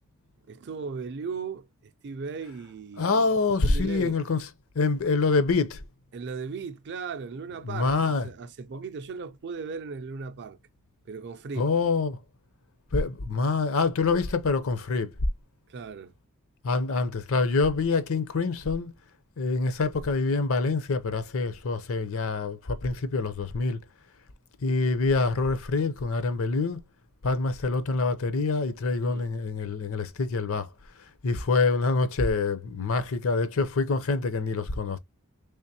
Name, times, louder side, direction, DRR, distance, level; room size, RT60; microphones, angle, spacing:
voice 1, 0.5-3.3 3.6-4.2 6.1-10.6 11.1-11.7 15.7-16.1 29.1-29.3, right 5 dB, 55° right, 0.5 m, -37 dB
voice 2, 3.0-4.5 4.7-5.8 7.6-8.3 11.6-12.2 12.9-15.1 16.6-18.9 19.4-23.8 24.6-26.8 27.2-30.7 31.2-35.0, left 3 dB, 65° left, 0.6 m, -26 dB
3.5 x 3.3 x 2.7 m
head